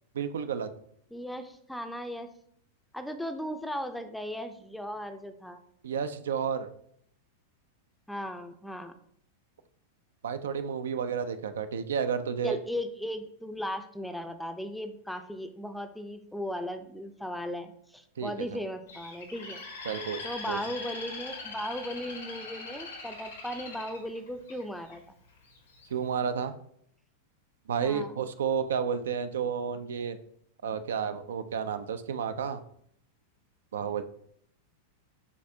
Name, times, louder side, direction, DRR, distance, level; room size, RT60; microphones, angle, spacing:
voice 1, 0.1-0.7 5.8-6.7 10.2-12.6 18.2-18.3 19.9-20.6 25.9-26.6 27.7-30.2 30.6-32.6 33.7-34.0, right 7 dB, 80° right, 11 dB, 0.3 m, -31 dB
voice 2, 1.1-2.3 2.9-5.6 8.1-8.9 12.4-19.7 20.2-25.2 27.8-28.2, equal, ahead, 8 dB, 0.4 m, -37 dB
Bird, 18.9-24.9 25.5-25.9, left 3 dB, 90° left, 1.3 m, -42 dB
6.6 x 2.4 x 2.7 m, 0.69 s
hypercardioid pair, 110°, 0 cm